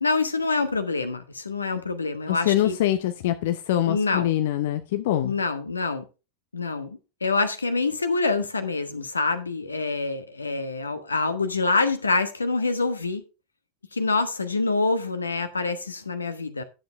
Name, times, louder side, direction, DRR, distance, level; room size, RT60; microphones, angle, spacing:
voice 1, 0.0-2.8 3.9-4.3 5.2-6.0 6.5-13.2 13.9-16.6, left 3 dB, 75° left, 1.1 m, -26 dB
voice 2, 2.3-5.4, left 12 dB, 55° left, 0.6 m, -24 dB
11.0 x 7.5 x 3.4 m
figure-of-eight pair, 90°, 0 cm